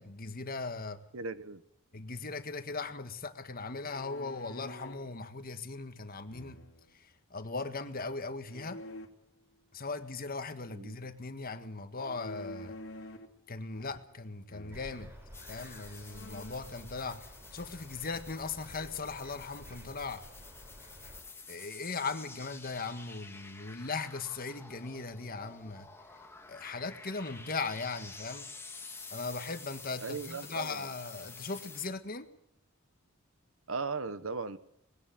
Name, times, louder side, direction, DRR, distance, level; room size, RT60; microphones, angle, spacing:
voice 1, 0.0-1.0 1.9-6.6 7.3-8.8 9.7-12.8 13.5-15.1 15.5-20.2 21.5-25.9 26.5-28.5 29.1-32.3, left 4 dB, 45° left, 1.7 m, -39 dB
voice 2, 1.1-1.6 10.7-11.0 30.0-30.9 33.7-34.6, right 4 dB, 80° right, 1.3 m, -37 dB
sound 1, 3.7-5.1 6.3-7.0 8.5-9.1 12.0-13.4 13.7-14.2 14.5-14.9 15.5-15.6 16.0-16.7, left 1 dB, 65° left, 2.6 m, -48 dB
sound 2, 14.7-21.2, equal, 10° right, 5.6 m, -51 dB
sound 3, 15.3-31.9, left 4 dB, 10° left, 1.8 m, -50 dB
20.5 x 17.0 x 7.9 m
head